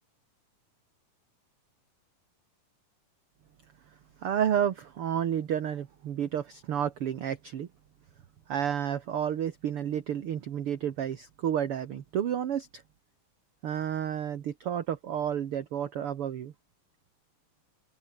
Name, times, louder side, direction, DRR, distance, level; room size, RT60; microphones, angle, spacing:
voice 1, 4.2-7.7 8.5-12.8 13.6-16.5, right 9 dB, 55° right, 1.8 m, -31 dB
omnidirectional pair, 3.9 m